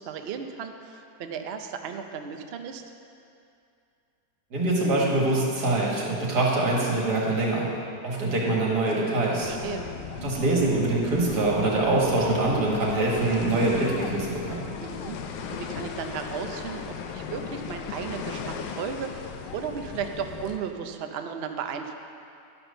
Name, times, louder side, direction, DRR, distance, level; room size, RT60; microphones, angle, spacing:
voice 1, 0.0-2.8 9.4-9.9 14.8-15.2 15.5-21.9, right 7 dB, 80° right, 5 dB, 0.5 m, -35 dB
voice 2, 4.5-7.7 8.0-9.5 10.2-14.7, right 2 dB, 65° right, -3 dB, 2.3 m, -24 dB
sound 1, 9.4-20.6, left 7 dB, 85° left, 1.3 m, -37 dB
11.0 x 6.1 x 6.6 m, 2.5 s
omnidirectional pair, 1.9 m